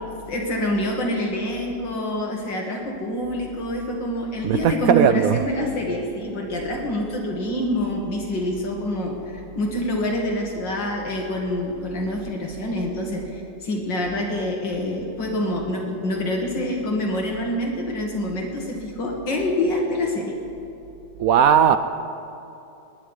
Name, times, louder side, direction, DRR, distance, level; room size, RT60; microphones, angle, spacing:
voice 1, 0.3-20.4, left 1 dB, 75° left, 2.6 m, -26 dB
voice 2, 4.4-5.4 21.2-21.8, right 8 dB, 75° right, 0.8 m, -17 dB
19.5 x 6.6 x 9.7 m
omnidirectional pair, 2.0 m